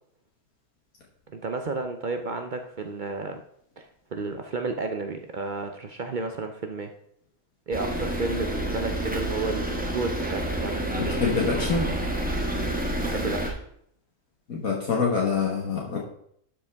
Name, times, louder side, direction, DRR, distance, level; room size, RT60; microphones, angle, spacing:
voice 1, 1.3-3.4 3.8-3.9 4.1-6.9 7.7-10.8 13.0-13.6, right 3 dB, 60° right, 5 dB, 0.5 m, -32 dB
sound 1, 7.7-13.5, right 1 dB, 5° right, 1.0 m, -29 dB
voice 2, 10.9-11.9 14.5-16.0, left 5 dB, 70° left, -2 dB, 1.8 m, -26 dB
11.5 x 5.4 x 3.4 m, 0.69 s
omnidirectional pair, 1.6 m